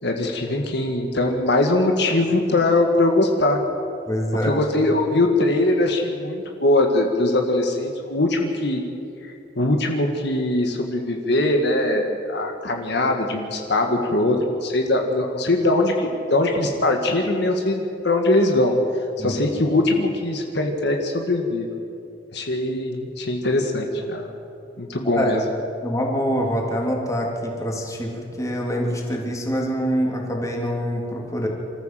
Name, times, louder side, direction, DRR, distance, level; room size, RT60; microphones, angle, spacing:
voice 1, 0.0-3.6 4.4-8.8 9.6-18.8 19.2-21.7 22.3-24.3 24.8-25.4, left 2 dB, 65° left, 3 dB, 1.8 m, -21 dB
voice 2, 4.1-4.5 19.2-19.3 25.1-25.3 25.8-31.5, equal, 20° left, -1 dB, 3.3 m, -25 dB
26.5 x 14.0 x 7.7 m, 2.8 s
head